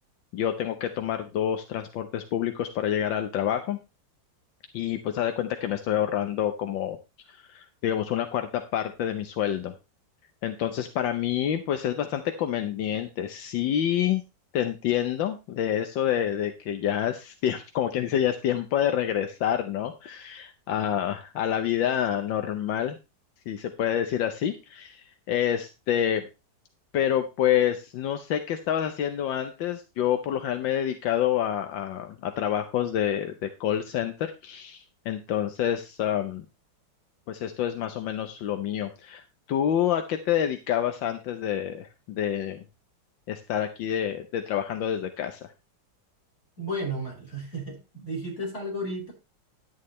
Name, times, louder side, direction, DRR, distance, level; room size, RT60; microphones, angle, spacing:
voice 1, 0.3-3.8 4.7-7.0 7.3-9.7 10.4-14.2 14.5-23.0 23.5-26.2 26.9-36.4 37.3-42.6 43.3-45.5, left 10 dB, 80° left, 7 dB, 1.6 m, -28 dB
voice 2, 46.6-49.1, right 1 dB, 35° left, -2 dB, 5.5 m, -33 dB
11.0 x 9.7 x 3.2 m, 0.27 s
omnidirectional pair, 2.0 m